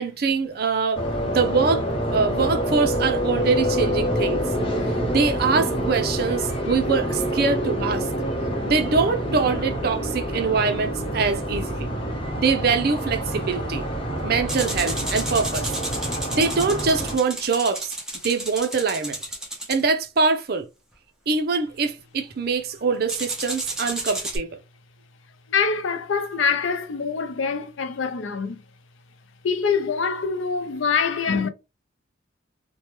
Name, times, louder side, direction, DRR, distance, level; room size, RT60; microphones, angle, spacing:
voice 1, 0.0-1.8 2.1-4.4 5.1-8.1 8.7-11.9 12.4-13.9 14.2-15.7 16.3-18.0 18.2-19.2 19.7-20.7 21.3-24.5, right 4 dB, 50° right, 0.5 m, -23 dB
sound 1, 0.9-17.2, equal, 30° left, 0.8 m, -27 dB
sound 2, 14.5-19.8 23.1-24.4, right 1 dB, 5° right, 0.7 m, -32 dB
voice 2, 25.5-28.6 29.4-31.5, left 5 dB, 80° left, 0.5 m, -24 dB
3.1 x 2.2 x 2.9 m
head